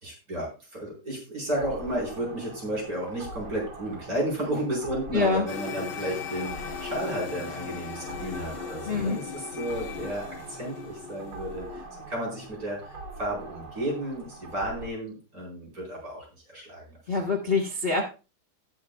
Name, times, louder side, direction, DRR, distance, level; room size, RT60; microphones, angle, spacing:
voice 1, 0.0-11.8 12.1-17.0, right 1 dB, 40° right, -3 dB, 5.1 m, -33 dB
sound 1, 1.5-14.9, right 2 dB, 70° right, 3.4 m, -44 dB
voice 2, 5.1-5.4 8.9-9.2 17.1-18.0, left 4 dB, 30° left, 2 dB, 1.3 m, -25 dB
sound 2, 5.5-11.9, left 6 dB, 70° left, 0.5 m, -38 dB
19.5 x 7.3 x 2.3 m, 0.32 s
omnidirectional pair, 2.4 m